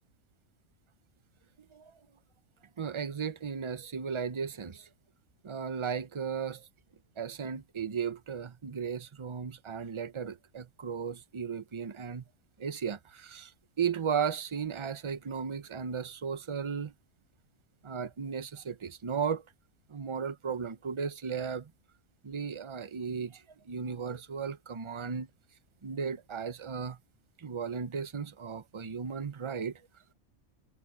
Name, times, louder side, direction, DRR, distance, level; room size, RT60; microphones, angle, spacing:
voice 1, 2.8-4.9 5.4-6.7 7.2-12.2 12.6-13.5 13.8-16.9 17.8-19.4 19.9-21.7 22.2-25.3 25.8-27.0 27.4-29.8, right 6 dB, 30° right, 0.6 m, -35 dB
omnidirectional pair, 1.4 m